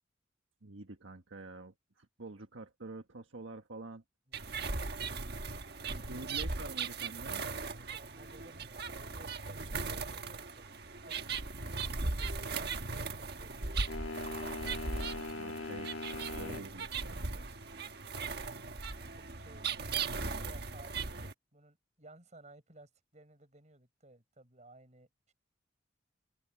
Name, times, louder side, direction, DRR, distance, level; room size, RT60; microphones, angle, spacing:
voice 1, 0.6-4.0 5.9-7.4 14.9-15.9 16.2-17.5, right 2 dB, 80° right, 1.5 m, -47 dB
voice 2, 4.3-4.6 5.7-6.3 7.7-10.7 11.0-11.3 11.9-14.3 18.8-25.3, right 2 dB, 35° right, 5.5 m, -58 dB
sound 1, 4.3-21.3, right 4 dB, 55° right, 1.5 m, -38 dB
sound 2, 13.9-16.7, left 2 dB, 85° left, 1.8 m, -41 dB
head